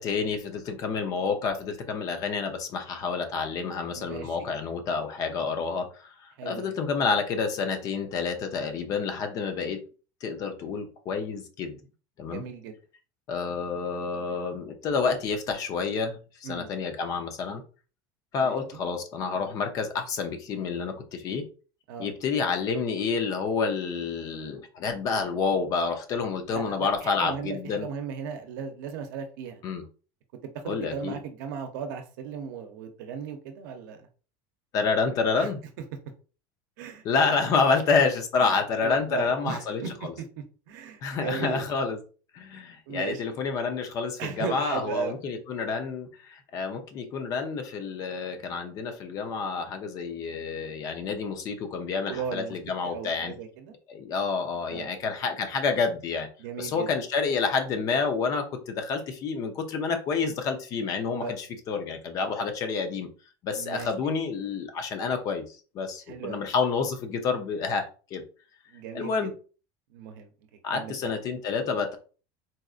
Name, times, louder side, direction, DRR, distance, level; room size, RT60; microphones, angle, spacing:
voice 1, 0.0-9.8 10.2-11.8 12.2-12.4 13.3-17.6 18.3-21.5 22.0-27.9 29.6-29.8 30.6-31.2 34.7-35.6 37.0-40.1 41.0-42.0 42.3-53.3 53.9-56.3 56.6-63.1 63.4-68.2 68.9-69.3 70.6-72.0, left 5 dB, 35° left, 6 dB, 0.6 m, -29 dB
voice 2, 4.0-4.5 6.4-6.7 12.3-12.8 16.4-16.7 18.4-18.8 21.9-22.1 26.5-29.6 30.6-34.1 35.3-35.5 36.8-37.0 38.4-38.5 38.8-39.9 40.7-41.6 42.9-43.2 44.2-45.1 52.1-52.5 52.8-53.7 54.7-54.9 56.4-56.9 61.2-61.4 63.5-64.1 66.1-66.4 68.7-69.3 69.9-70.3 70.7-71.1, right 6 dB, 70° right, 5 dB, 0.6 m, -36 dB
4.0 x 2.4 x 2.4 m, 0.37 s
cardioid pair, 165°, 11 cm